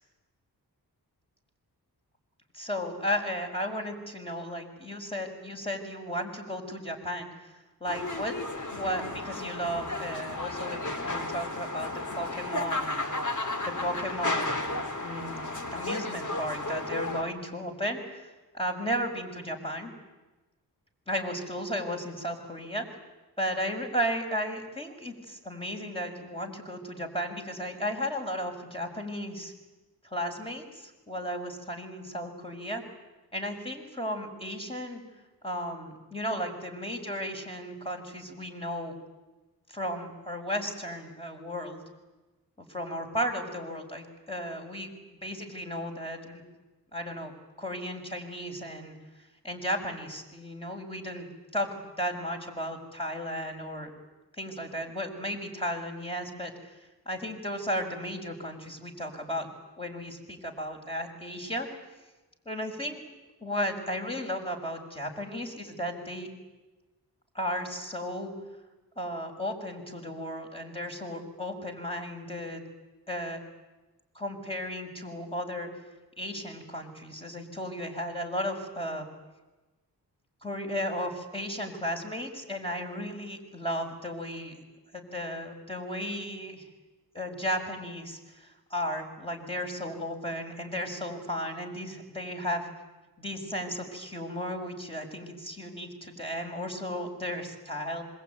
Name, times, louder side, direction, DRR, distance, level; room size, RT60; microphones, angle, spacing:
voice 1, 2.5-7.5 7.8-8.4 8.8-13.0 13.6-19.9 21.1-22.9 23.4-29.5 30.0-32.8 33.3-35.0 35.4-38.9 39.7-41.8 42.6-44.9 45.2-46.4 46.9-47.3 47.6-49.0 49.4-53.9 54.4-56.7 57.1-59.5 59.8-61.7 62.4-63.0 63.4-66.3 67.3-68.3 69.0-72.6 73.1-73.4 74.1-75.7 76.2-79.1 80.4-84.6 84.9-86.7 87.1-92.7 93.2-98.0, equal, 15° left, 2 dB, 6.2 m, -34 dB
sound 1, 7.9-17.2, left 2 dB, 50° left, 3.8 m, -33 dB
25.5 x 23.0 x 9.6 m, 1.1 s
cardioid pair, 50°, 39 cm